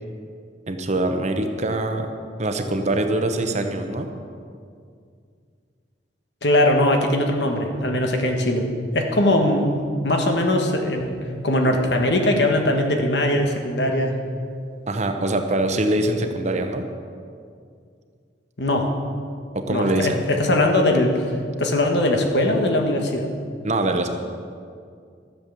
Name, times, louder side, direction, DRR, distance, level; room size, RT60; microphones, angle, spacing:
voice 1, 0.7-2.1 2.4-4.1 14.9-16.9 19.5-20.2 23.6-24.1, right 1 dB, 40° right, 6 dB, 0.9 m, -23 dB
voice 2, 6.4-8.7 8.9-11.2 11.4-14.1 18.6-18.9 19.7-23.3, left 1 dB, 70° left, 3 dB, 1.5 m, -20 dB
13.0 x 7.5 x 7.0 m, 2.3 s
head